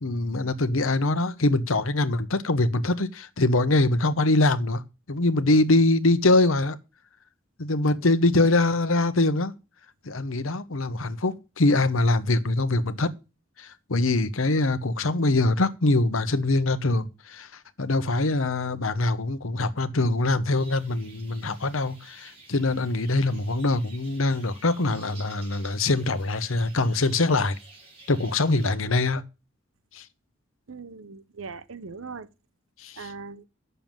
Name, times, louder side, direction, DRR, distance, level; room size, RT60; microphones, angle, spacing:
voice 1, 0.0-4.8 5.1-6.8 7.6-9.5 10.0-13.1 13.6-17.5 17.8-27.6 28.1-29.2 29.9-30.0 32.8-33.1, left 2 dB, 85° left, 1.0 m, -23 dB
sound 1, 20.5-28.8, right 3 dB, 30° right, 6.2 m, -51 dB
voice 2, 30.7-32.3 33.0-33.4, right 4 dB, 85° right, 0.9 m, -40 dB
9.1 x 6.8 x 7.5 m
head